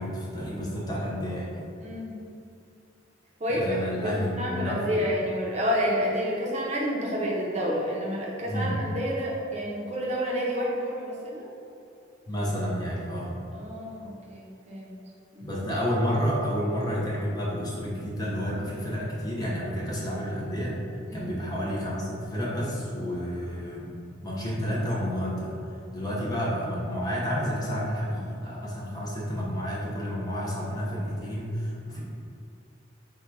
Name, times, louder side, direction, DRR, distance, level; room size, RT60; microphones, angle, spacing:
voice 1, 0.0-1.6 3.5-5.0 8.5-8.8 12.3-13.4 15.4-20.8 21.1-24.0 24.2-25.5 25.9-32.0, equal, 20° left, -5 dB, 0.6 m, -30 dB
voice 2, 1.8-2.1 3.4-3.7 4.0-11.5 13.5-15.0 15.3-15.5 21.1-21.3, equal, 35° right, -4 dB, 0.6 m, -29 dB
3.7 x 2.2 x 4.4 m, 2.6 s
head